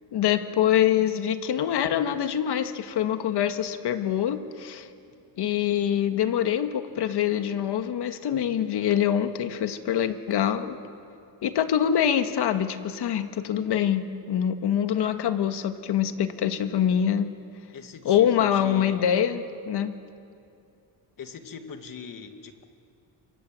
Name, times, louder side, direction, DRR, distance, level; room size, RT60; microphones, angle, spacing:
voice 1, 0.1-4.9 5.4-10.8 11.4-17.3 18.1-19.9, left 9 dB, 65° left, 8 dB, 1.8 m, -25 dB
voice 2, 17.7-19.1 21.2-22.7, left 6 dB, 50° left, 6 dB, 2.3 m, -41 dB
28.5 x 25.5 x 7.7 m, 2.5 s
cardioid pair, 120°, 43 cm